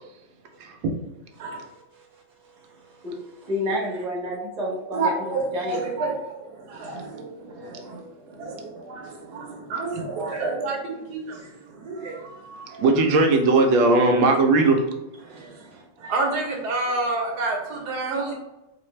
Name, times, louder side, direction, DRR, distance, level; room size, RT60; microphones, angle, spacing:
voice 1, 0.6-0.9 6.9-8.1 12.8-14.8, right 3 dB, 90° right, 4 dB, 1.3 m, -20 dB
voice 2, 3.0-5.9, equal, 25° right, -5 dB, 0.9 m, -30 dB
voice 3, 4.9-8.0 8.3-11.4 11.8-12.8 15.2-15.6 16.0-18.3, right 3 dB, 65° right, 0 dB, 1.2 m, -29 dB
4.2 x 2.5 x 3.1 m, 0.98 s
omnidirectional pair, 2.0 m